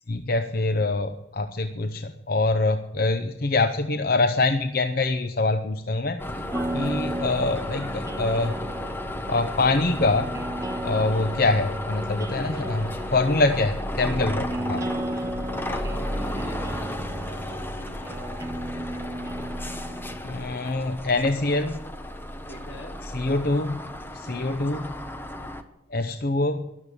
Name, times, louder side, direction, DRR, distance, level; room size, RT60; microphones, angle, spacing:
voice 1, 0.1-6.2 6.7-8.6 9.3-10.3 10.8-14.8 20.2-21.9 23.1-23.8 24.1-24.9 25.9-26.6, left 2 dB, 50° left, 8 dB, 0.8 m, -24 dB
sound 1, 6.2-25.6, left 1 dB, 10° left, 1.0 m, -34 dB
sound 2, 6.5-20.2, right 1 dB, 15° right, 0.6 m, -34 dB
voice 2, 6.8-7.2 10.8-11.3 12.3-12.7 15.1-19.1 22.5-22.9 24.3-24.5 25.4-25.5, left 1 dB, 80° left, 2 dB, 3.6 m, -44 dB
13.0 x 11.5 x 8.3 m, 0.92 s
head